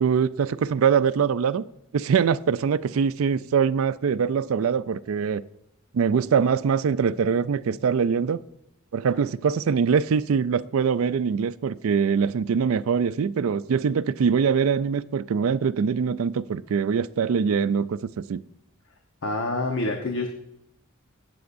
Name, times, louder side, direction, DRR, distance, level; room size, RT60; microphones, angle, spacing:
voice 1, 0.0-1.6 1.9-5.4 5.9-8.4 8.9-18.4, right 6 dB, 75° right, 0.4 m, -23 dB
voice 2, 19.2-20.3, left 2 dB, 65° left, 1.0 m, -27 dB
17.5 x 6.9 x 2.6 m
head